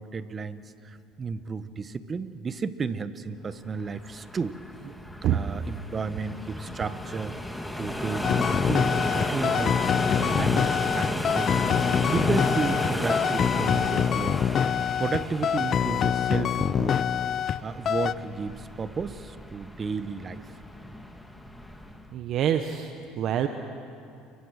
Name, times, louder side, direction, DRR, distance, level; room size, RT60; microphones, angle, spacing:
voice 1, 0.0-4.6 5.3-7.4 7.8-11.6 12.1-14.4 15.0-17.0 17.6-20.6, right 5 dB, 25° right, 12 dB, 1.1 m, -33 dB
sound 1, 3.8-22.1, left 1 dB, 5° left, 1.8 m, -33 dB
sound 2, 8.2-17.6 17.9-18.1, left 9 dB, 40° left, 0.6 m, -25 dB
voice 2, 22.1-23.5, right 10 dB, 55° right, 7 dB, 1.1 m, -26 dB
29.0 x 23.0 x 6.5 m, 2.6 s
supercardioid pair, 110°, 0 cm